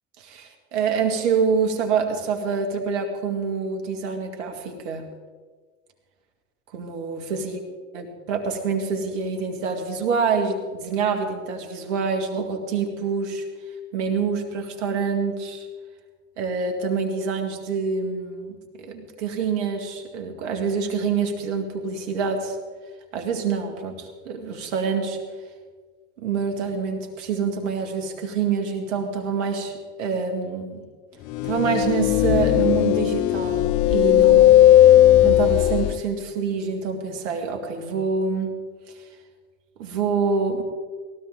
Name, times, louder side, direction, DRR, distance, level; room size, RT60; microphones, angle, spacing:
voice 1, 0.2-5.1 6.7-7.6 7.9-13.4 13.9-15.7 16.4-22.6 23.1-25.2 26.2-30.8 31.4-34.7 35.2-38.6 39.8-40.6, right 5 dB, 80° right, 4 dB, 2.1 m, -26 dB
sound 1, 31.3-36.0, left 13 dB, 75° left, 0.7 m, -16 dB
18.5 x 16.0 x 3.7 m, 1.5 s
hypercardioid pair, 60°, 36 cm